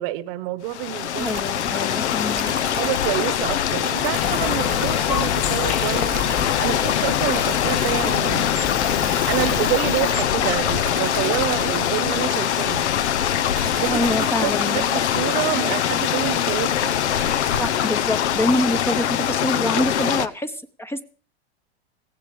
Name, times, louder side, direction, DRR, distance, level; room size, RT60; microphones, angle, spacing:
voice 1, 0.0-1.4 2.7-6.1 6.6-8.5 9.3-12.9 13.8-14.0 14.4-16.9, right 15 dB, 55° right, 1.2 m, -27 dB
sound 1, 0.7-20.3, left 10 dB, 80° left, 1.0 m, -23 dB
voice 2, 1.2-2.5 13.9-14.8 17.6-21.0, left 1 dB, 5° left, 0.8 m, -25 dB
sound 2, 1.2-17.8, right 9 dB, 25° right, 1.0 m, -38 dB
sound 3, 4.1-9.6, left 9 dB, 45° left, 1.5 m, -28 dB
19.0 x 15.5 x 3.2 m
hypercardioid pair, 110°, 33 cm